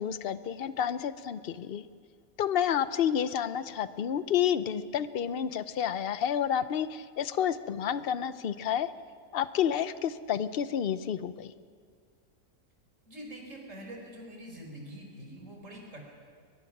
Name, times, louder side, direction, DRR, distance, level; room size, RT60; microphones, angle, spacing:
voice 1, 0.0-1.8 2.4-8.9 9.3-11.5, left 9 dB, 50° left, 14 dB, 0.8 m, -30 dB
voice 2, 13.1-16.1, right 1 dB, 55° right, 1 dB, 4.8 m, -45 dB
22.5 x 22.0 x 6.0 m, 2.1 s
omnidirectional pair, 1.5 m